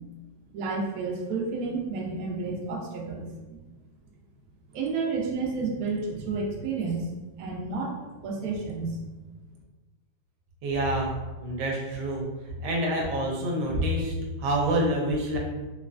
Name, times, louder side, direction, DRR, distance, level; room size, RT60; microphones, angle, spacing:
voice 1, 0.5-3.6 4.7-7.0 7.4-8.0 8.2-9.0, right 4 dB, 85° right, -1 dB, 0.8 m, -31 dB
voice 2, 10.6-12.2 12.6-15.4, right 1 dB, 70° right, -1 dB, 1.2 m, -27 dB
3.9 x 2.1 x 2.5 m, 1.2 s
omnidirectional pair, 2.1 m